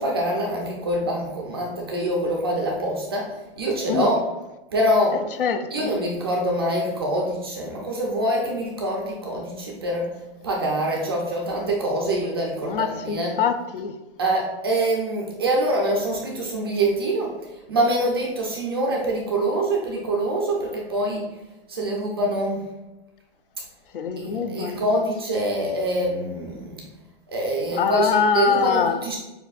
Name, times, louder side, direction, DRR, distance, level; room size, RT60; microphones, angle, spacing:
voice 1, 0.0-4.2 4.7-5.2 5.7-10.1 10.4-13.4 14.2-17.3 17.7-21.3 21.7-22.7 24.2-26.9 27.3-29.2, right 1 dB, 25° right, -1 dB, 0.4 m, -25 dB
voice 2, 5.1-5.9 12.6-13.9 23.9-24.8 27.8-29.0, left 6 dB, 60° left, 9 dB, 0.5 m, -24 dB
6.8 x 2.6 x 2.3 m, 1.0 s
hypercardioid pair, 175°, 32 cm